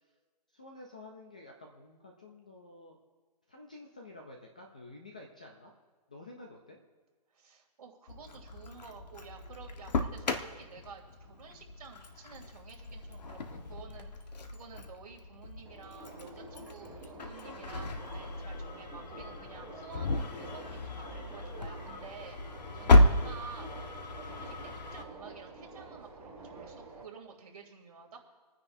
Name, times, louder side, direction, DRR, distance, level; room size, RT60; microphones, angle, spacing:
voice 1, 0.5-3.0 3.5-5.7 6.1-6.8, left 2 dB, 10° left, 1 dB, 0.3 m, -50 dB
voice 2, 7.3-23.7 24.2-28.2, right 5 dB, 60° right, 0 dB, 2.8 m, -51 dB
Engine starting, 8.1-25.0, left 2 dB, 80° left, 1.3 m, -33 dB
Subway metro underground, 15.7-27.0, right 2 dB, 10° right, 1.3 m, -48 dB
27.5 x 9.6 x 2.6 m, 1.4 s
hypercardioid pair, 170°, 21 cm